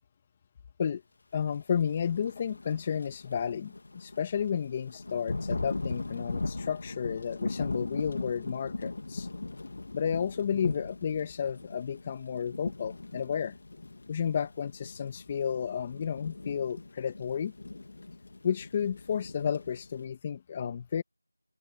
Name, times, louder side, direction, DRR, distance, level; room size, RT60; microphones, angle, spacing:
voice 1, 1.3-9.3 9.9-13.5 14.1-17.5 18.4-21.0, left 7 dB, 15° left, 1.7 m, -32 dB
Thunder / Rain, 1.9-20.0, left 2 dB, 40° left, 2.4 m, -39 dB
open air
figure-of-eight pair, 175°, 0 cm